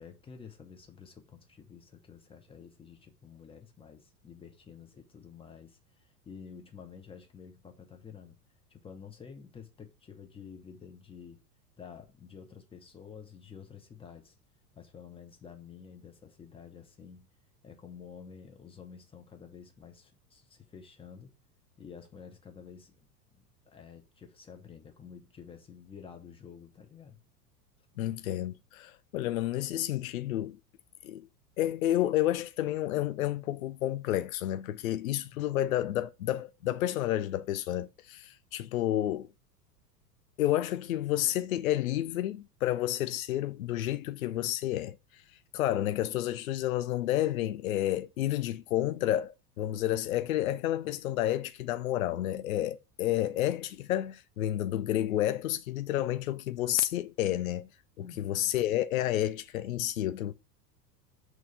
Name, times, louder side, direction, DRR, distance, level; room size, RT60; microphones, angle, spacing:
voice 1, 0.0-8.4 8.7-11.4 11.8-14.3 14.7-17.3 17.6-21.3 21.8-27.2 35.3-35.4 58.0-58.5, left 6 dB, 10° left, 0.7 m, -50 dB
voice 2, 28.0-30.6 31.0-31.3 31.6-39.3 40.4-45.2 45.5-57.7 58.2-60.3, left 13 dB, 60° left, 0.5 m, -30 dB
6.3 x 3.1 x 4.9 m
figure-of-eight pair, 85°, 47 cm